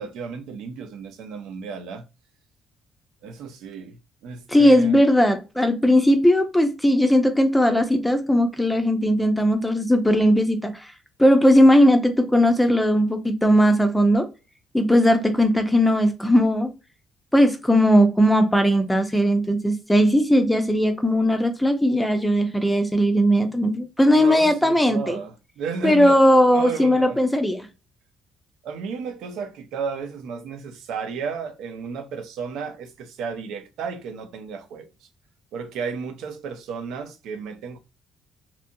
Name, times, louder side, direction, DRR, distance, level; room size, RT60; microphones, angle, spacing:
voice 1, 0.0-2.0 3.2-4.0 4.2-5.0 24.2-26.2 26.5-27.2 28.6-35.1 35.5-37.8, right 5 dB, 80° right, 0.5 m, -33 dB
voice 2, 4.5-10.9 11.2-14.3 14.7-16.7 17.3-25.2 25.8-27.7, equal, 5° left, 0.4 m, -18 dB
2.6 x 2.5 x 2.6 m
cardioid pair, 100°, 0 cm